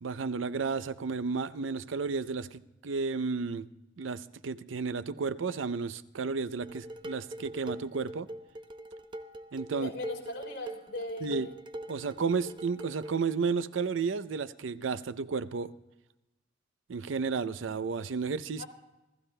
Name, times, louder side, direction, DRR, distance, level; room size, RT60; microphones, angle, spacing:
voice 1, 0.0-3.7 4.0-8.3 9.5-9.9 11.2-11.5 11.9-15.7 16.9-18.6, right 5 dB, 90° right, 0.5 m, -32 dB
Dishes pots and pans, 6.6-13.2, right 1 dB, 25° right, 0.7 m, -43 dB
voice 2, 9.7-11.5 18.6-18.7, left 2 dB, 75° left, 3.2 m, -38 dB
27.5 x 14.5 x 2.2 m
head